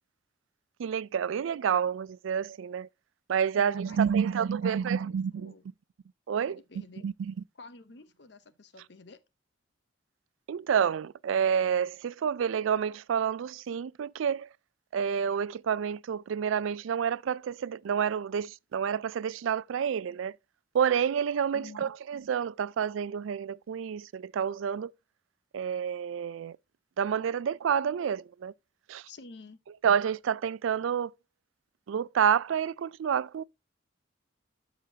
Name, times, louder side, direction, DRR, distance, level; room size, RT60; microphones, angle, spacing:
voice 1, 0.8-2.9 3.3-5.5 6.3-6.6 7.0-7.3 10.5-14.5 14.9-20.4 20.7-24.9 25.5-26.6 27.0-28.5 28.9-29.1 29.8-31.1 31.9-33.4, right 7 dB, 85° right, 0.3 m, -29 dB
voice 2, 3.5-5.6 6.5-7.1 7.6-9.2 21.5-21.9 29.1-29.6, left 3 dB, 60° left, 0.8 m, -50 dB
12.5 x 5.1 x 2.8 m
head